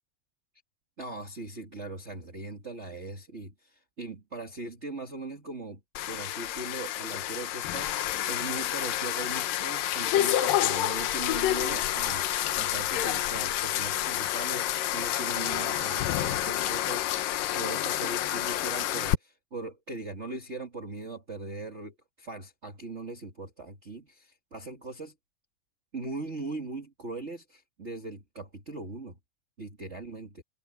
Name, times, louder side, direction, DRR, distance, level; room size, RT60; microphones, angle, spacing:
voice 1, 1.0-5.8 6.1-25.1 25.9-29.2 29.6-30.4, right 3 dB, 30° right, 1.3 m, -40 dB
sound 1, 6.0-19.1, left 13 dB, 70° left, 2.2 m, -29 dB
omnidirectional pair, 5.1 m